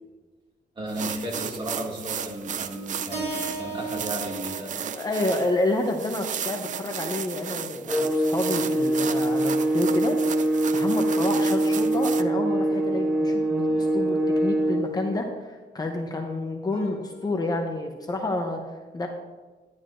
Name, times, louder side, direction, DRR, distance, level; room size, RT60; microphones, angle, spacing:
voice 1, 0.8-4.9 16.7-17.3, equal, 30° right, -3 dB, 2.1 m, -35 dB
sound 1, 0.9-12.2, right 8 dB, 45° right, 0.4 m, -35 dB
Keyboard (musical), 3.1-7.3, right 3 dB, 75° right, 2.3 m, -38 dB
voice 2, 4.8-10.2 10.7-19.1, left 2 dB, 20° left, 2 dB, 0.7 m, -29 dB
sound 2, 7.9-14.9, right 1 dB, 5° right, 1.0 m, -24 dB
11.0 x 10.5 x 2.5 m, 1.3 s
wide cardioid pair, 155°, 18 cm